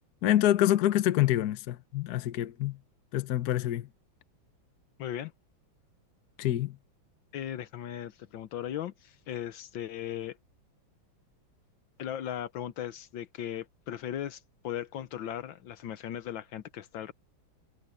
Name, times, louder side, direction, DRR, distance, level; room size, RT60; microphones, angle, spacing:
voice 1, 0.2-2.8 3.1-3.9 6.4-6.8, left 13 dB, 60° left, 1.3 m, -26 dB
voice 2, 5.0-5.3 7.3-10.4 12.0-17.1, left 10 dB, 75° left, 1.5 m, -37 dB
omnidirectional pair, 2.2 m